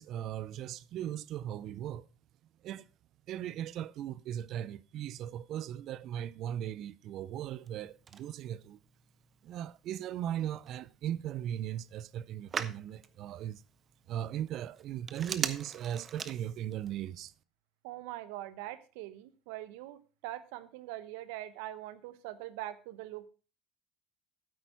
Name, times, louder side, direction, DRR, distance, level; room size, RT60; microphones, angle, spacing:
voice 1, 0.0-2.1 2.6-2.9 3.3-8.8 9.4-13.6 14.1-17.3, right 11 dB, 60° right, 0.4 m, -38 dB
Telephone, 7.3-16.9, right 6 dB, 40° right, 0.9 m, -44 dB
voice 2, 17.8-23.3, right 14 dB, 80° right, 0.8 m, -43 dB
9.4 x 8.3 x 4.4 m
supercardioid pair, 80°, 0 cm